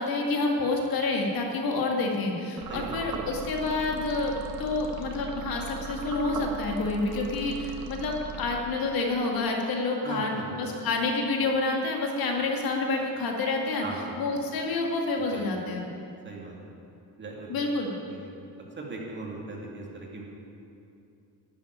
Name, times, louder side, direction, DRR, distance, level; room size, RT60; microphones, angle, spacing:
voice 1, 0.0-4.3 4.6-13.8 14.2-15.9 17.5-17.9, left 3 dB, 65° left, 1 dB, 2.1 m, -28 dB
sound 1, 2.6-9.1, right 4 dB, 55° right, 1.2 m, -39 dB
voice 2, 10.0-10.7 13.8-14.1 15.1-15.5 16.2-16.6 17.2-17.5 18.1-18.3 18.8-20.2, right 3 dB, 30° right, -2 dB, 2.6 m, -38 dB
12.0 x 7.7 x 9.9 m, 2.6 s
cardioid pair, 130°, 39 cm